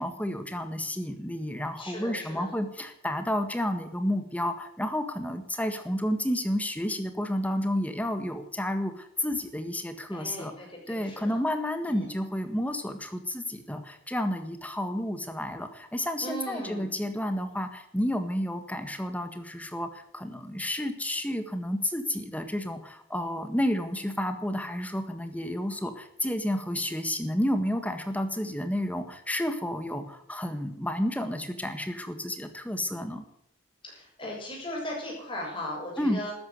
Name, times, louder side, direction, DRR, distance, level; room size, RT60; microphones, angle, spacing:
voice 1, 0.0-10.5 10.9-33.2 36.0-36.2, left 1 dB, 5° left, 8 dB, 1.6 m, -31 dB
voice 2, 1.8-2.5 10.1-11.3 11.9-12.1 16.2-16.9 33.8-36.3, equal, 25° left, -2 dB, 7.2 m, -37 dB
13.0 x 11.0 x 9.4 m, 0.72 s
head